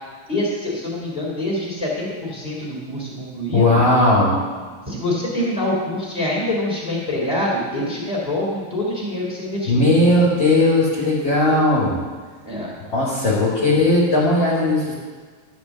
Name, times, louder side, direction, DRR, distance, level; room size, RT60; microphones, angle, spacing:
voice 1, 0.3-3.8 4.9-10.1 12.5-12.8 13.2-13.3, left 1 dB, ahead, -5 dB, 2.7 m, -25 dB
voice 2, 3.5-4.4 9.7-12.0 12.8-14.9, left 2 dB, 40° left, -7 dB, 2.4 m, -17 dB
12.5 x 5.4 x 7.3 m, 1.5 s
omnidirectional pair, 3.6 m